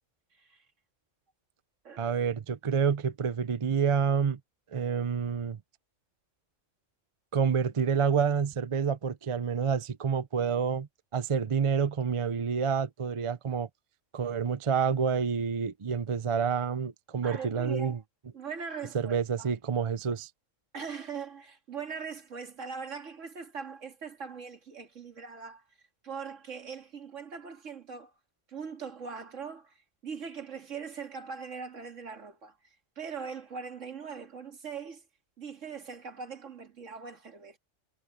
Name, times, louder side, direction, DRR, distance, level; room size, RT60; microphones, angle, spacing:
voice 1, 0.3-0.7 1.8-2.2 17.2-18.0 18.3-19.5 20.7-25.6 26.0-28.1 28.5-35.0 35.4-37.6, right 6 dB, 75° right, 2.4 m, -41 dB
voice 2, 2.0-4.4 4.7-5.6 7.3-10.9 11.1-13.7 14.1-18.0 18.9-20.3, right 6 dB, 35° right, 0.6 m, -28 dB
omnidirectional pair, 1.3 m